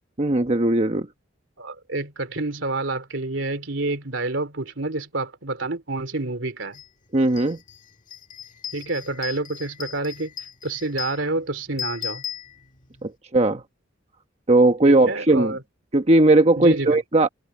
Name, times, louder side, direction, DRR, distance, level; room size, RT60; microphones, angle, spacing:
voice 1, 0.2-1.1 7.1-7.6 13.0-13.6 14.5-15.6 15.9-17.3, right 2 dB, 35° right, 1.1 m, -18 dB
voice 2, 1.6-6.8 8.7-10.3 10.6-12.2 14.8-15.6 16.6-17.0, right 2 dB, 75° right, 3.1 m, -28 dB
sound 1, 6.7-6.9 7.2-13.1, left 8 dB, 45° left, 1.7 m, -37 dB
head